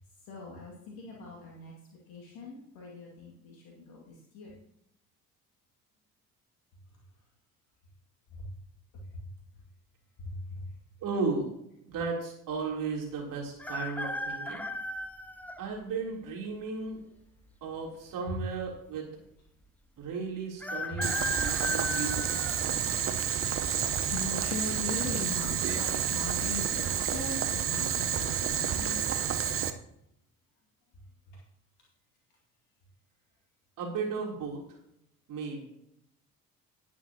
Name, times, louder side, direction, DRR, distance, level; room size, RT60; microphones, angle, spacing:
voice 1, 0.2-1.7 2.1-4.6 8.3-8.5 8.9-9.0 10.2-10.7 18.3-18.4 20.9-21.0 22.4-29.4 31.3-31.4, left 3 dB, 55° left, -3 dB, 2.3 m, -41 dB
voice 2, 11.0-11.5 11.9-14.7 15.6-17.0 17.6-19.1 20.0-22.3 33.8-34.6 35.3-35.6, right 4 dB, 50° right, -1 dB, 3.4 m, -35 dB
sound 1, 13.6-15.6 16.3-16.4 17.5-18.1 18.4-18.5 18.7-18.8 20.6-23.2 23.7-24.2 25.3-25.6 25.9-26.0 26.5-26.9 27.4-27.6, left 1 dB, 5° left, 0.8 m, -36 dB
Boiling, 21.0-29.7, right 8 dB, 30° right, 0.9 m, -30 dB
17.5 x 7.2 x 2.9 m, 0.78 s
figure-of-eight pair, 55°, 43 cm